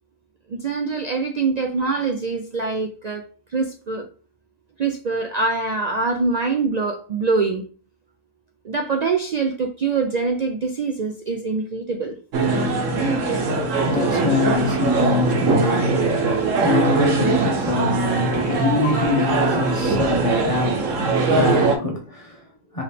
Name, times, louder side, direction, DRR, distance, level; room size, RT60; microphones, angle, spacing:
voice 1, 0.5-4.1 4.8-7.6 8.6-12.2, right 4 dB, 70° right, 0.4 m, -24 dB
sound 1, 12.3-21.8, right 3 dB, 85° right, 1.2 m, -21 dB
voice 2, 12.9-22.8, left 3 dB, 30° left, 0.9 m, -25 dB
4.7 x 3.1 x 3.4 m
omnidirectional pair, 1.3 m